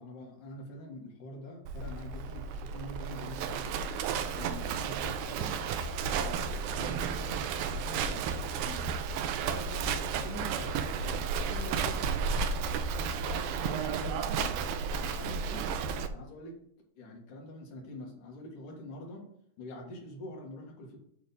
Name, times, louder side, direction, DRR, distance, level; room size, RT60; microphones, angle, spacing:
voice 1, 0.0-3.9 4.3-5.6 6.1-8.9 9.4-12.6 13.2-14.6 15.0-15.6 16.1-16.5 17.0-19.2 19.6-21.0, left 1 dB, 60° left, -1 dB, 2.9 m, -45 dB
Livestock farm animals working animals, 1.7-16.1, right 6 dB, 80° right, 2.1 m, -33 dB
9.1 x 3.6 x 6.8 m, 0.73 s
omnidirectional pair, 4.8 m